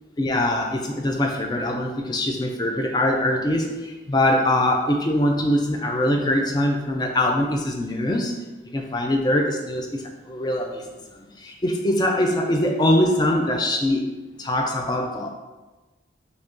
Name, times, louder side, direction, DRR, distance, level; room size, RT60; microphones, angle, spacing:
voice 1, 0.2-8.3 8.7-10.9 11.1-14.1 14.4-15.3, left 1 dB, 20° left, 3 dB, 0.3 m, -23 dB
2.9 x 2.6 x 3.5 m, 1.2 s
head